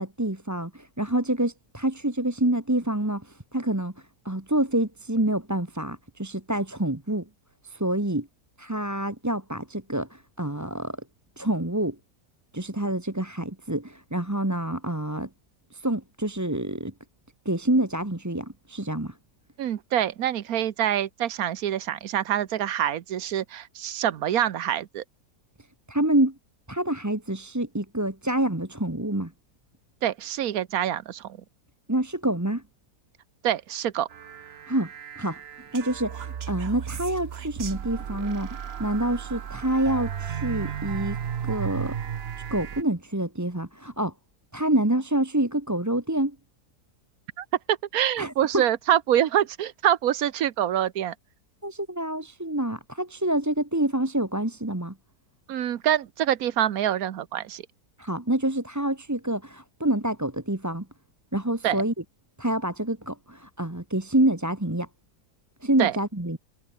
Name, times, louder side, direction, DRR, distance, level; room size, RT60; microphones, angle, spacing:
voice 1, 0.0-3.9 4.2-7.2 7.6-8.3 8.6-11.0 11.4-12.0 12.5-15.3 15.7-16.9 17.4-19.1 25.9-26.3 26.7-29.3 31.9-32.6 34.7-34.9 35.1-35.4 35.7-41.2 41.4-42.0 42.5-44.1 44.5-46.3 48.2-48.6 51.6-54.9 58.0-60.8 61.3-61.9 62.4-64.9 65.6-66.4, right 1 dB, 10° right, 1.7 m, -27 dB
voice 2, 19.6-25.0 30.0-31.3 33.4-34.1 47.4-51.1 55.5-57.6 61.6-61.8 65.8-65.9, right 11 dB, 65° right, 1.4 m, -25 dB
sound 1, 34.1-42.8, right 8 dB, 45° right, 1.0 m, -34 dB
omnidirectional pair, 1.7 m